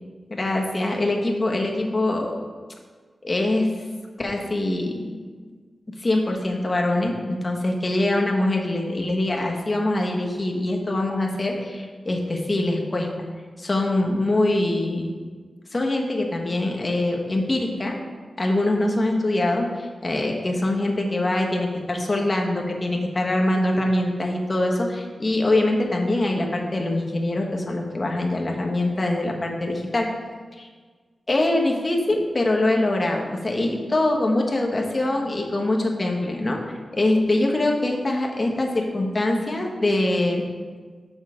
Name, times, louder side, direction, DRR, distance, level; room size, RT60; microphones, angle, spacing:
voice 1, 0.3-2.4 3.2-3.7 4.2-5.1 6.0-13.1 13.6-15.1 15.7-18.0 18.4-30.1 30.5-30.7 31.3-36.6 36.9-40.4, left 1 dB, 35° left, 0 dB, 1.2 m, -23 dB
6.4 x 6.4 x 5.0 m, 1.5 s
wide cardioid pair, 85°, 0 cm